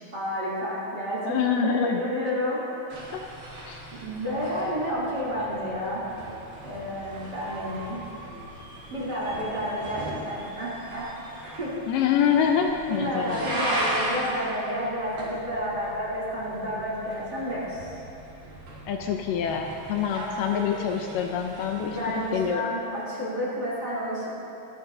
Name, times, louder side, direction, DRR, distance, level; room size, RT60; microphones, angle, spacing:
voice 1, 0.1-2.8 3.9-6.0 6.6-8.0 8.9-11.1 11.4-11.8 12.9-18.0 20.2-20.8 21.8-24.3, equal, 30° right, -8 dB, 3.0 m, -30 dB
voice 2, 1.3-2.0 3.1-3.2 3.7-3.8 11.9-13.6 18.9-22.7, left 7 dB, 80° left, 3 dB, 2.2 m, -26 dB
sound 1, 2.9-22.6, right 1 dB, 60° right, 3.8 m, -38 dB
25.5 x 10.0 x 2.7 m, 2.9 s
omnidirectional pair, 4.1 m